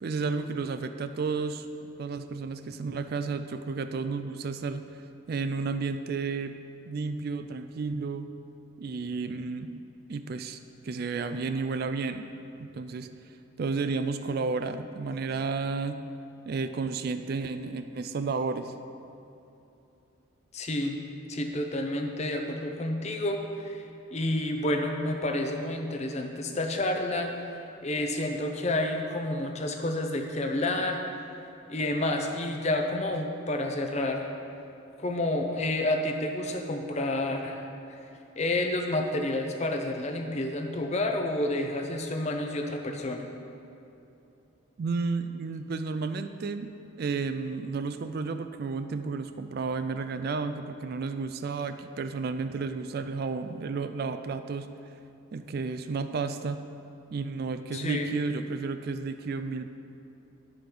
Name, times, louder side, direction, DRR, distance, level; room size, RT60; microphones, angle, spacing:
voice 1, 0.0-1.7 2.0-4.9 5.3-6.6 6.9-8.3 8.8-9.8 10.1-12.3 12.6-13.1 13.6-16.0 16.5-18.7 44.8-54.7 55.3-56.6 57.1-59.7, right 4 dB, 45° right, 9 dB, 0.3 m, -32 dB
voice 2, 20.5-20.9 21.3-23.8 24.1-31.0 31.7-34.3 35.0-38.0 38.4-43.2 57.7-58.1, left 1 dB, 30° left, 3 dB, 0.6 m, -29 dB
9.8 x 5.1 x 5.9 m, 2.8 s
head